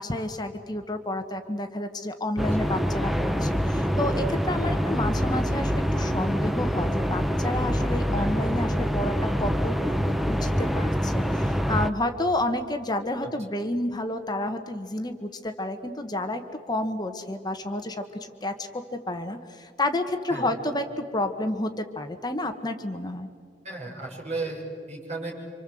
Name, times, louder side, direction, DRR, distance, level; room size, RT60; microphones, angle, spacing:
voice 1, 0.0-16.4 16.7-23.3, left 1 dB, 25° left, 7 dB, 1.3 m, -30 dB
sound 1, 2.4-11.9, equal, ahead, 0.7 m, -25 dB
voice 2, 23.6-24.6 24.9-25.3, right 3 dB, 40° right, -1 dB, 6.4 m, -34 dB
27.0 x 26.0 x 7.8 m, 2.1 s
head